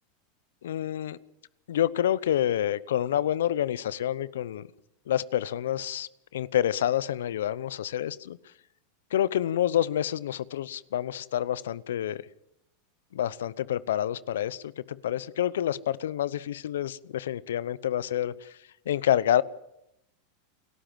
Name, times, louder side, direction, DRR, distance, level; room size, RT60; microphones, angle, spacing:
voice 1, 0.6-1.2 1.7-4.7 5.1-8.4 9.1-12.2 13.1-14.6 14.9-18.3 18.9-19.4, left 11 dB, 75° left, 19 dB, 0.8 m, -28 dB
28.0 x 13.0 x 7.6 m, 0.83 s
hypercardioid pair, 100°, 0 cm